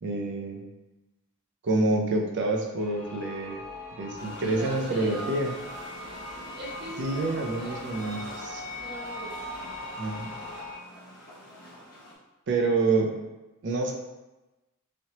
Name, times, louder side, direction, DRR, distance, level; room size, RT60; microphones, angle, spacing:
voice 1, 0.0-0.7 1.6-3.6 4.0-5.5 7.0-8.6 10.0-10.3 12.5-13.1 13.6-13.9, right 2 dB, 55° right, 1 dB, 0.5 m, -27 dB
sound 1, 2.8-10.8, left 1 dB, 65° left, 0.7 m, -40 dB
sound 2, 4.2-12.1, equal, 40° left, 1.1 m, -45 dB
voice 2, 4.4-5.3 6.5-7.9 8.8-9.4, equal, 25° right, -7 dB, 0.9 m, -40 dB
3.1 x 2.8 x 2.8 m, 1.1 s
head